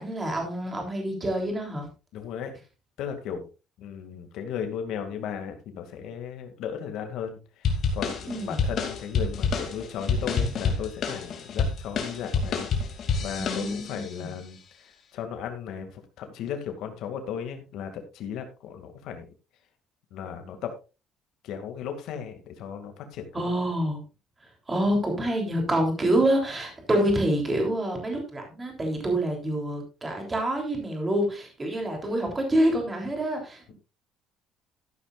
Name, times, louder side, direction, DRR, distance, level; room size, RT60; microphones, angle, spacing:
voice 1, 0.0-1.9 8.3-8.6 13.4-14.3 23.3-24.0 24.7-33.7, right 1 dB, 15° right, 2 dB, 3.4 m, -27 dB
voice 2, 2.1-2.6 3.0-3.4 3.8-12.7 13.2-19.3 20.1-20.8 21.4-23.4, left 8 dB, 65° left, 6 dB, 2.3 m, -36 dB
sound 1, 7.6-14.1, left 5 dB, 40° left, 2.7 m, -28 dB
13.5 x 11.0 x 2.5 m, 0.30 s
cardioid pair, 175°, 0 cm